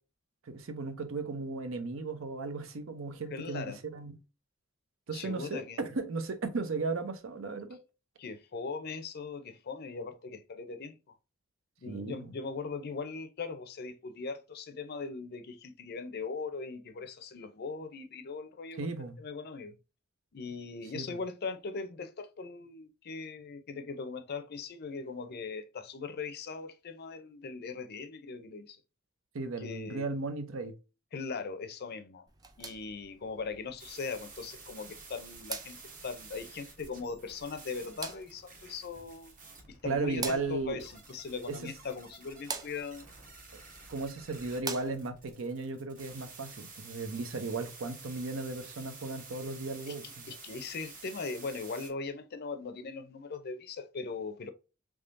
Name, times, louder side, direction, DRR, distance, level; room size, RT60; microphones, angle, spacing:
voice 1, 0.5-4.2 5.1-7.8 11.9-12.3 18.8-19.2 20.9-21.2 29.3-30.7 39.8-40.8 41.5-41.7 43.5-43.6 43.9-50.2, right 3 dB, 75° right, 0.6 m, -36 dB
voice 2, 3.3-3.8 5.1-5.8 8.2-11.0 11.8-18.9 19.2-19.8 20.3-28.8 29.6-30.0 31.1-32.3 32.6-39.3 39.7-43.1 49.9-50.0 50.3-54.5, left 4 dB, 50° left, 0.5 m, -40 dB
sound 1, 32.3-45.3, right 4 dB, 20° right, 0.4 m, -46 dB
sound 2, 33.8-51.9, right 4 dB, 40° right, 1.0 m, -51 dB
3.5 x 3.1 x 2.5 m
head